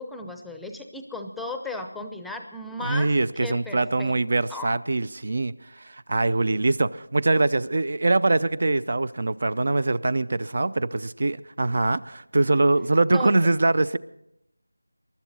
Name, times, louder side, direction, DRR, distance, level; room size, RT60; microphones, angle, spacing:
voice 1, 0.0-4.1 4.5-4.7 13.1-13.3, left 2 dB, ahead, 5 dB, 0.7 m, -36 dB
voice 2, 2.8-14.0, right 2 dB, 50° right, 18 dB, 0.5 m, -23 dB
23.0 x 12.0 x 4.1 m, 0.82 s
figure-of-eight pair, 170°, 0 cm